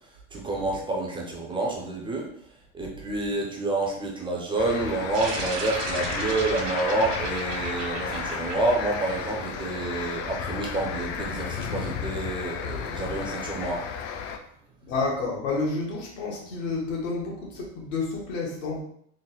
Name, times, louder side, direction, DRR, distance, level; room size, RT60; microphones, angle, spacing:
voice 1, 0.3-2.3 2.7-13.9, right 2 dB, 15° right, -1 dB, 0.3 m, -28 dB
sound 1, 4.6-14.4, left 7 dB, 65° left, 0.6 m, -33 dB
sound 2, 5.1-9.8, right 4 dB, 75° right, 1.1 m, -35 dB
voice 2, 14.8-18.8, left 3 dB, 90° left, -2 dB, 1.4 m, -30 dB
3.9 x 2.1 x 3.9 m, 0.68 s
supercardioid pair, 140°, 38 cm